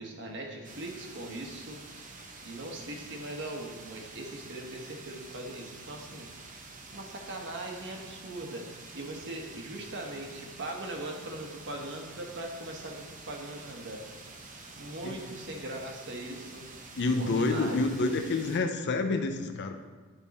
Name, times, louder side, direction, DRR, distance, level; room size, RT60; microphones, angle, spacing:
voice 1, 0.0-1.8 2.4-6.6 6.9-14.0 14.8-16.7 17.2-17.8, right 1 dB, 55° right, 1 dB, 1.1 m, -40 dB
sound 1, 0.6-18.6, right 3 dB, 35° right, 0.7 m, -48 dB
voice 2, 17.0-19.7, left 3 dB, 50° left, 7 dB, 0.5 m, -28 dB
10.5 x 3.6 x 4.1 m, 1.4 s
head